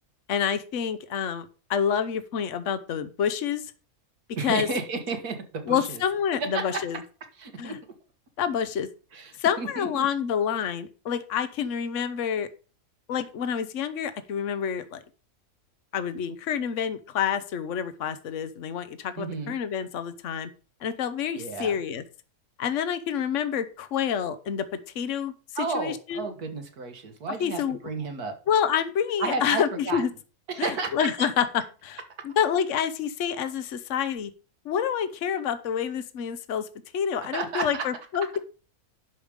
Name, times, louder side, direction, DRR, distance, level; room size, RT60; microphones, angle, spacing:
voice 1, 0.3-3.7 4.4-4.7 5.7-7.0 7.6-7.8 8.4-8.9 9.4-12.5 13.1-15.0 15.9-20.5 20.8-22.0 22.6-24.7 24.9-25.3 25.7-26.3 27.4-27.8 28.5-30.1 30.6-31.5 31.8-34.3 34.6-36.7 36.9-38.3, left 8 dB, 55° left, 12 dB, 1.1 m, -28 dB
voice 2, 4.4-6.0 6.4-6.8 7.4-7.8 9.1-10.1 19.2-19.6 21.3-21.8 25.6-28.4 29.2-30.0 30.5-31.3 37.3-37.9, right 4 dB, 80° right, 5 dB, 2.1 m, -32 dB
11.0 x 5.1 x 5.2 m, 0.37 s
omnidirectional pair, 1.6 m